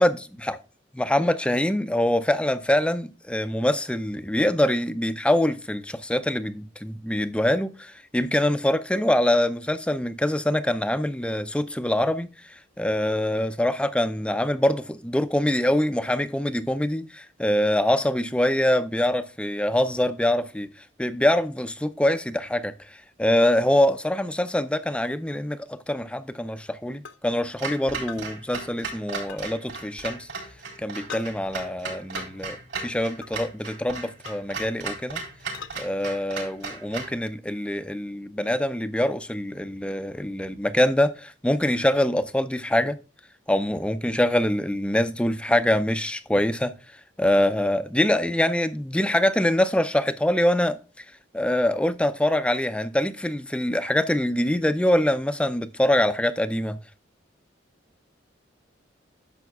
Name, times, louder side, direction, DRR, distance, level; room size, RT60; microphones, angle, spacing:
voice 1, 0.0-0.6 1.0-20.7 21.0-30.3 30.8-35.2 35.8-43.0 43.5-46.7 47.2-51.0 51.3-56.8, left 1 dB, 5° left, 0.4 m, -24 dB
sound 1, 27.1-27.2 28.1-28.3 29.3-29.4 31.1-31.3 32.2-32.3 33.2-33.4 34.3-34.4 35.5-35.8 36.6-36.8, left 5 dB, 75° left, 0.9 m, -39 dB
Clock, 27.6-37.2, right 4 dB, 65° right, 3.8 m, -36 dB
11.0 x 7.0 x 2.2 m
head